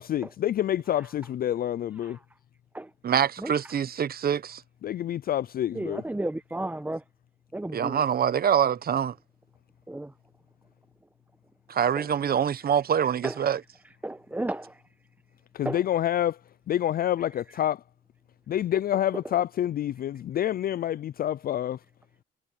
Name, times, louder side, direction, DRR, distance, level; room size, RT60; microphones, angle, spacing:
voice 1, 0.0-2.2 4.8-6.0 15.5-16.4 16.7-17.8 18.5-21.8, left 11 dB, 50° left, 0.4 m, -27 dB
voice 2, 3.0-4.6 7.7-9.1 11.7-13.6, right 8 dB, 50° right, 1.1 m, -25 dB
voice 3, 5.7-7.0 7.5-8.0 9.9-10.1 12.0-12.1 13.2-13.4 14.0-14.8 15.6-15.8, right 1 dB, 10° right, 1.1 m, -33 dB
cardioid pair, 90°, 20 cm